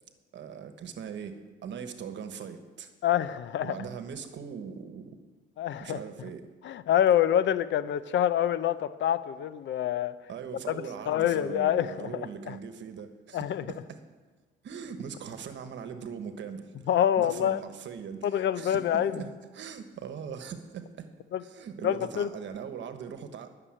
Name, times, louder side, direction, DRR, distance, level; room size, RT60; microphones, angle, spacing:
voice 1, 0.3-2.9 3.6-5.2 5.8-6.5 10.3-14.0 14.6-16.7 17.2-21.1 21.4-23.5, right 7 dB, 65° right, 8 dB, 1.2 m, -40 dB
voice 2, 3.0-3.8 5.6-6.0 6.6-10.1 10.7-12.6 13.3-13.6 16.9-17.6 18.2-19.2 21.3-21.4 21.8-22.3, left 10 dB, 70° left, 15 dB, 0.6 m, -26 dB
11.5 x 6.7 x 8.8 m, 1.3 s
cardioid pair, 90°, 20 cm